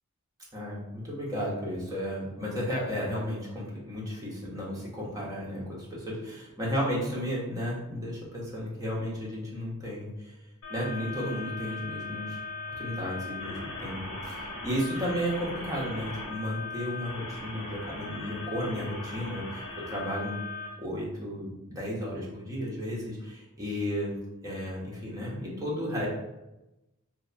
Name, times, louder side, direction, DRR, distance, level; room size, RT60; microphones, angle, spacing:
voice 1, 0.5-10.3 10.7-12.4 12.8-20.4 20.8-24.2 24.4-26.1, equal, 15° right, -5 dB, 0.6 m, -33 dB
sound 1, 10.6-20.7, left 3 dB, 70° left, 0.8 m, -39 dB
2.8 x 2.1 x 2.4 m, 0.97 s
head